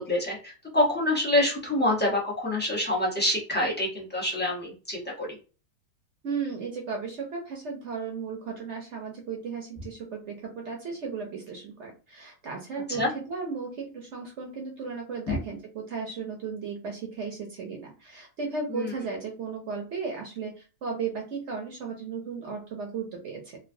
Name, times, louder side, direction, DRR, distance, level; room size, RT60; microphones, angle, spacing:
voice 1, 0.0-5.4 12.9-13.1 15.3-15.4 18.7-18.9, left 1 dB, 15° left, -4 dB, 0.3 m, -26 dB
voice 2, 6.2-23.6, right 5 dB, 60° right, 1 dB, 0.8 m, -35 dB
3.0 x 2.3 x 2.6 m, 0.34 s
omnidirectional pair, 1.7 m